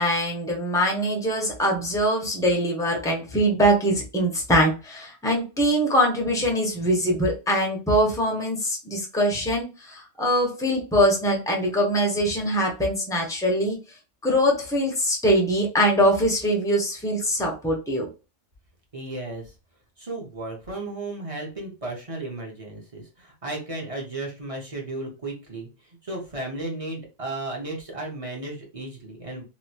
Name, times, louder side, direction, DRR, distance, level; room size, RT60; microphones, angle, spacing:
voice 1, 0.0-13.8 14.2-18.1, equal, 5° left, 0 dB, 0.7 m, -23 dB
voice 2, 18.9-19.5 20.0-25.7 26.0-29.4, right 2 dB, 30° right, -1 dB, 0.9 m, -34 dB
3.0 x 2.6 x 2.7 m, 0.31 s
omnidirectional pair, 1.3 m